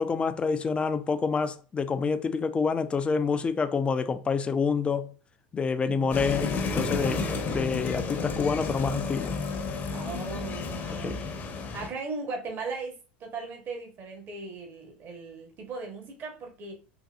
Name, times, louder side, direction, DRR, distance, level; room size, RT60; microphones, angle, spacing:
voice 1, 0.0-5.1 5.5-9.3 11.0-11.2, left 5 dB, 20° left, 0.4 m, -27 dB
sound 1, 6.1-11.9, left 4 dB, 35° left, 0.8 m, -31 dB
voice 2, 9.9-11.2 11.7-16.8, right 4 dB, 40° right, 1.1 m, -38 dB
3.8 x 2.6 x 2.4 m
hypercardioid pair, 95°, 5 cm